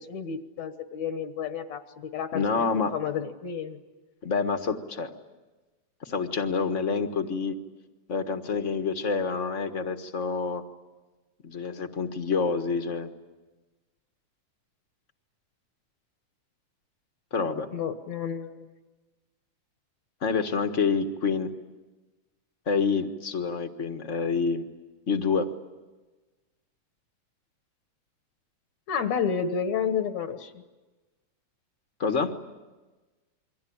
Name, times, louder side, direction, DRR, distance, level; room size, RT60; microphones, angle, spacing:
voice 1, 0.0-3.8 17.7-18.7 28.9-30.5, left 7 dB, 70° left, 8 dB, 2.5 m, -31 dB
voice 2, 2.3-2.9 4.2-5.1 6.0-7.6 8.1-10.6 11.4-13.1 17.3-17.7 20.2-21.5 22.7-24.6 25.1-25.5 32.0-32.3, left 5 dB, 35° left, 7 dB, 1.3 m, -27 dB
29.0 x 23.5 x 8.7 m, 1.2 s
omnidirectional pair, 3.3 m